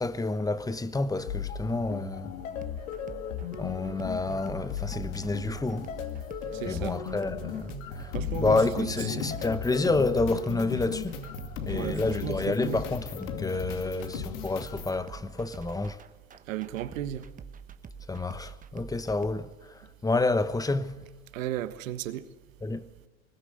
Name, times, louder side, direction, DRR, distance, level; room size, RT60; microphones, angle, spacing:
voice 1, 0.0-2.3 3.6-5.9 6.7-11.2 11.6-16.0 18.1-21.0 22.6-22.8, left 3 dB, 10° left, 1.0 m, -29 dB
sound 1, 1.3-15.0, left 7 dB, 75° left, 2.5 m, -36 dB
sound 2, 2.6-19.3, right 6 dB, 20° right, 1.1 m, -47 dB
voice 2, 6.5-7.0 8.1-9.3 11.7-12.8 16.5-17.3 21.3-22.3, right 12 dB, 75° right, 1.5 m, -35 dB
20.5 x 19.0 x 7.9 m
hypercardioid pair, 105°, 41 cm